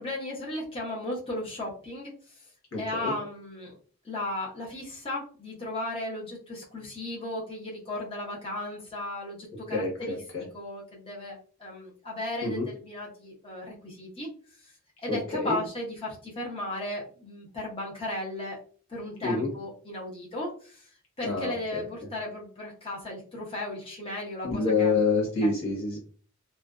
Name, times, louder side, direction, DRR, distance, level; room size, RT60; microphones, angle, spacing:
voice 1, 0.0-2.2 2.8-3.7 4.0-14.3 14.6-14.7 15.0-18.6 18.9-20.9 21.2-25.0 25.4-25.5, left 1 dB, 25° left, -4 dB, 0.7 m, -35 dB
voice 2, 2.7-3.1 9.7-10.4 12.4-12.6 15.1-15.6 19.2-19.5 21.2-21.8 24.4-26.0, left 3 dB, 90° left, -2 dB, 1.2 m, -27 dB
2.5 x 2.2 x 2.3 m, 0.42 s
head